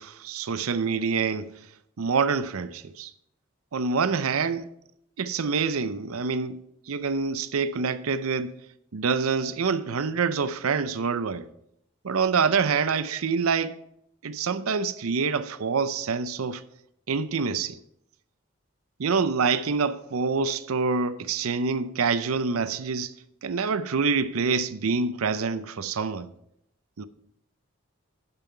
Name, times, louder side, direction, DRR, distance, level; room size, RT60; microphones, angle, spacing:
voice 1, 0.0-1.5 2.0-3.1 3.7-4.7 5.2-6.6 6.9-8.5 8.9-11.5 12.0-13.8 14.2-16.6 17.1-17.8 19.0-23.1 23.4-26.3 27.0-27.1, right 5 dB, 90° right, 0.6 m, -26 dB
12.5 x 5.6 x 4.5 m
head